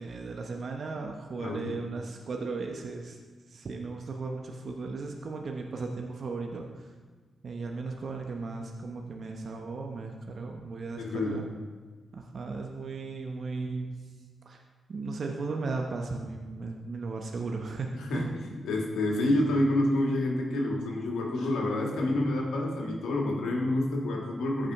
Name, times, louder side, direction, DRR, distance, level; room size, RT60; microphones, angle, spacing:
voice 1, 0.0-3.2 3.5-6.8 7.4-11.4 12.1-13.9 14.5-14.6 14.9-18.3, right 3 dB, 60° right, 2 dB, 0.9 m, -36 dB
voice 2, 1.4-1.9 11.0-11.5 17.9-24.7, left 1 dB, 80° left, -1 dB, 1.6 m, -28 dB
15.0 x 5.1 x 3.6 m, 1.4 s
supercardioid pair, 40°, 0 cm